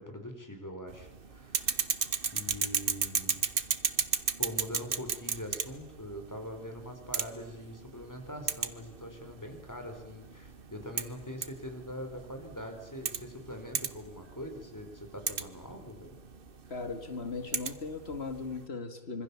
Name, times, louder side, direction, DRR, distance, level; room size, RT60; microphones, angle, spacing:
voice 1, 0.0-1.8 2.3-3.4 4.4-16.2, equal, 15° left, 4 dB, 4.6 m, -43 dB
sound 1, 0.9-18.6, right 6 dB, 60° right, 1.3 m, -36 dB
voice 2, 16.7-19.2, left 4 dB, 90° left, 7 dB, 2.5 m, -38 dB
26.0 x 25.0 x 7.2 m, 1.0 s
omnidirectional pair, 1.0 m